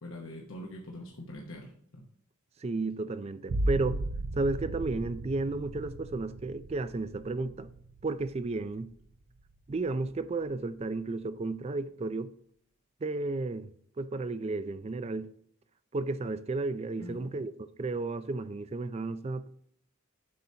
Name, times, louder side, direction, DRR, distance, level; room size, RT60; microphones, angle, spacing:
voice 1, 0.0-2.1 17.0-17.4, left 1 dB, 65° left, 0.9 m, -44 dB
voice 2, 2.6-4.0 4.3-7.7 8.0-8.9 9.7-12.3 13.0-13.7 14.0-15.3 15.9-17.5 17.8-19.5, right 3 dB, 30° right, 0.4 m, -33 dB
sound 1, 3.5-8.9 9.4-10.0, right 2 dB, 80° right, 0.6 m, -36 dB
7.6 x 5.7 x 2.7 m
head